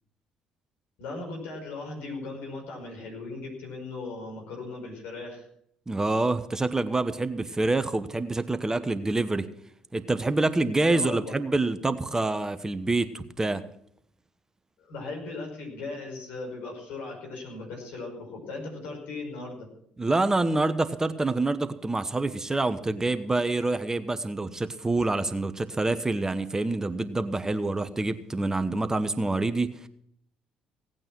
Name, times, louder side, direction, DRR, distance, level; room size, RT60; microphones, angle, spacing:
voice 1, 1.0-5.4 10.9-11.3 14.8-19.7, left 3 dB, 70° left, 1 dB, 5.3 m, -38 dB
voice 2, 5.9-9.5 9.9-13.6 20.0-29.9, right 2 dB, 20° right, 12 dB, 1.0 m, -26 dB
17.5 x 8.9 x 6.1 m, 0.68 s
hypercardioid pair, 55°, 3 cm